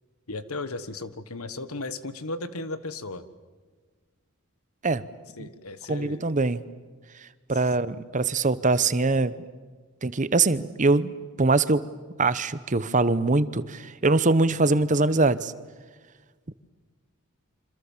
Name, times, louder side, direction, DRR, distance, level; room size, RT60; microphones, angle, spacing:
voice 1, 0.3-3.2 5.4-6.3 7.5-7.6, left 2 dB, 90° left, 13 dB, 1.5 m, -35 dB
voice 2, 5.9-6.6 7.5-9.3 10.0-11.8 12.2-15.5, right 3 dB, 35° right, 15 dB, 0.9 m, -23 dB
28.0 x 26.0 x 7.4 m, 1.4 s
head